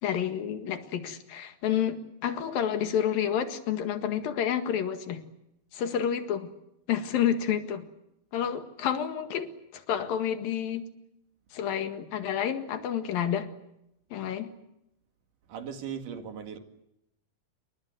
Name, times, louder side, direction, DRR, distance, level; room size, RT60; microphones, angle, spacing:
voice 1, 0.0-5.2 5.7-6.5 6.9-7.9 8.3-10.9 11.5-13.5 14.1-14.5, left 9 dB, 85° left, 3.6 m, -29 dB
voice 2, 15.5-16.6, right 7 dB, 70° right, 3.6 m, -38 dB
28.5 x 23.0 x 7.9 m
omnidirectional pair, 4.0 m